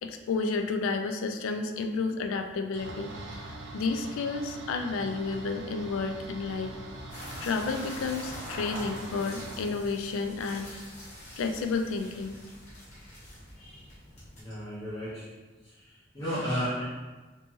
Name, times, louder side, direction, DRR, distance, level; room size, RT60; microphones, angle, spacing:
voice 1, 0.0-3.1 3.5-6.7 7.4-10.7 11.4-12.4, left 4 dB, 85° left, 7 dB, 0.3 m, -31 dB
sound 1, 2.7-9.7, right 2 dB, 70° right, 0.4 m, -43 dB
sound 2, 7.1-14.4, left 1 dB, 35° left, 1.0 m, -44 dB
voice 2, 13.5-13.9 14.3-15.3 15.6-16.8, equal, 20° left, -12 dB, 0.6 m, -34 dB
2.7 x 2.2 x 3.0 m, 1.2 s
head